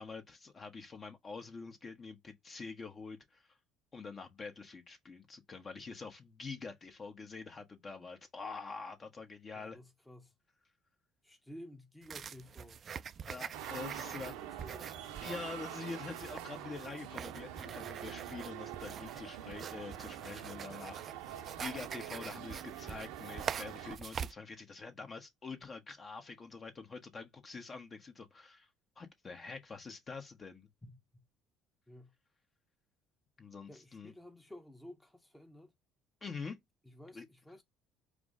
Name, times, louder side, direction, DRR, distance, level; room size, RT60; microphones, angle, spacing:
voice 1, 0.0-3.4 3.9-9.8 13.3-14.3 15.2-21.0 21.3-28.7 29.0-30.7 33.4-34.1 36.2-36.6 37.1-37.3, left 4 dB, 35° left, 1.1 m, -46 dB
voice 2, 9.5-10.3 11.2-12.8 14.0-15.1 30.8-31.3 31.9-32.1 33.7-35.7 36.8-37.6, left 1 dB, 10° left, 0.9 m, -53 dB
sound 1, 12.0-24.3, right 7 dB, 45° right, 0.3 m, -45 dB
sound 2, 13.5-24.0, right 11 dB, 80° right, 0.7 m, -45 dB
4.8 x 2.1 x 3.7 m
hypercardioid pair, 65°, 0 cm